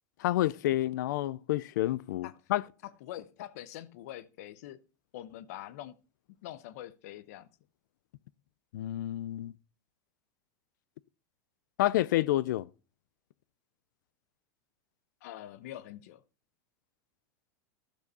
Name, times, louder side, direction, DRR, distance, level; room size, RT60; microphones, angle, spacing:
voice 1, 0.2-2.6 8.7-9.5 11.8-12.7, left 15 dB, 85° left, 0.5 m, -29 dB
voice 2, 2.8-4.8 5.1-6.0 6.4-7.5 15.2-16.2, left 13 dB, 55° left, 0.7 m, -44 dB
12.5 x 6.8 x 4.2 m
supercardioid pair, 175°, 10 cm